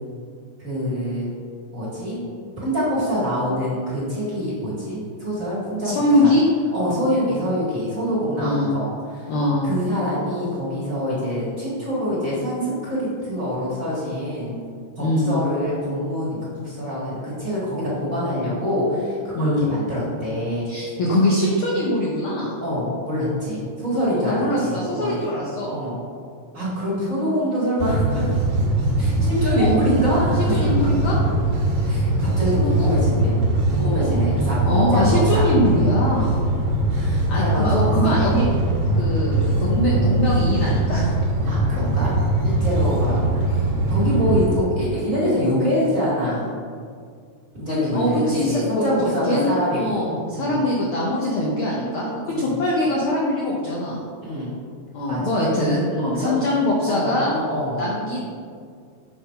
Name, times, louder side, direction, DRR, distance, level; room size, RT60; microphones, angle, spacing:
voice 1, 0.6-1.3 1.7-2.2 2.6-6.3 6.7-9.3 9.6-14.6 15.0-20.7 22.6-25.2 25.7-26.0 26.5-28.3 29.0-30.8 31.0-31.1 31.8-33.4 33.7-35.4 36.4-36.6 36.9-38.0 41.5-42.1 42.4-43.5 43.9-46.5 47.5-50.6 52.3-52.5 54.2-54.5 55.1-55.4 56.0-56.3 56.9-57.9, equal, 35° right, -8 dB, 1.6 m, -25 dB
voice 2, 5.8-6.5 8.4-8.7 9.3-9.7 15.0-15.4 19.3-19.7 20.7-22.5 24.2-25.7 29.5-29.7 30.5-31.2 32.5-33.0 33.8-34.3 34.6-36.3 37.3-38.5 38.9-41.1 47.7-48.9 49.2-54.0 54.9-57.3 57.8-58.2, left 1 dB, 85° left, -5 dB, 1.1 m, -22 dB
sound 1, 27.8-44.5, right 1 dB, 65° right, 2.4 m, -21 dB
7.1 x 3.7 x 5.5 m, 2.2 s
omnidirectional pair, 3.6 m